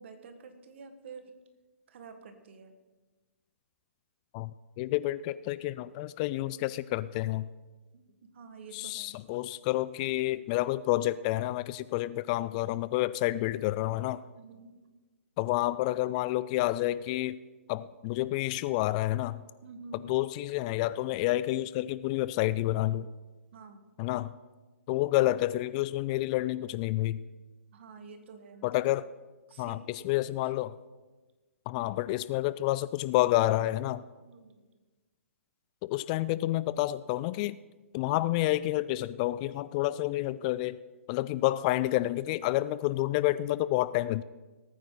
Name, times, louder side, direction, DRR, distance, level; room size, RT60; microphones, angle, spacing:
voice 1, 0.0-1.3 1.9-2.7 7.9-9.2 14.3-14.8 19.6-20.1 23.5-23.9 27.7-28.7 29.5-30.0 34.1-34.6, right 4 dB, 55° right, 8 dB, 1.7 m, -49 dB
voice 2, 4.8-7.5 8.7-14.2 15.4-17.4 17.7-19.4 20.0-23.1 24.0-24.3 24.9-27.2 28.6-29.1 29.6-30.7 31.7-34.0 35.8-37.6 37.9-40.8 41.1-44.2, left 16 dB, 30° left, 17 dB, 0.3 m, -29 dB
18.5 x 9.3 x 3.9 m, 1.3 s
hypercardioid pair, 140°, 8 cm